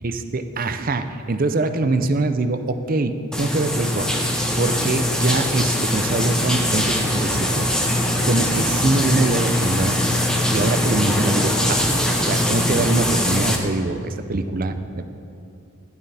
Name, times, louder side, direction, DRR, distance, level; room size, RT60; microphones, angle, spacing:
voice 1, 0.0-4.2 4.6-7.7 8.3-10.0 10.5-11.8 12.2-15.0, right 2 dB, 40° right, 9 dB, 0.6 m, -23 dB
sound 1, 3.3-13.6, left 1 dB, 5° left, 0.9 m, -21 dB
13.0 x 11.0 x 4.2 m, 2.6 s
head